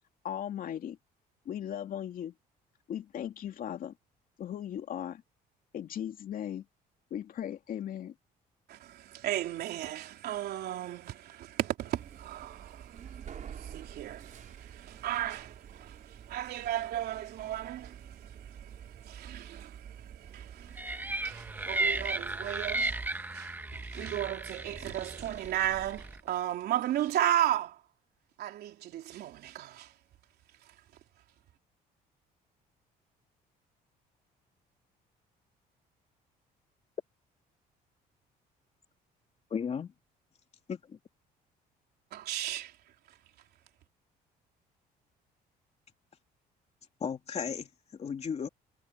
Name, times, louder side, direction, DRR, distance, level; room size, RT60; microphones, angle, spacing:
voice 1, 0.2-1.0 1.4-2.3 2.9-3.9 4.4-5.2 5.7-6.6 7.1-8.1, left 10 dB, 55° left, 2.6 m, -37 dB
voice 2, 8.7-27.8 28.4-29.9 42.1-42.7, right 12 dB, 70° right, 3.7 m, -35 dB
sound 1, 11.9-23.1, right 8 dB, 50° right, 4.4 m, -49 dB
sound 2, 20.8-26.2, right 2 dB, 10° right, 1.2 m, -35 dB
voice 3, 39.5-39.9 40.7-41.0 47.0-48.5, left 6 dB, 40° left, 2.9 m, -35 dB
cardioid pair, 110°, 17 cm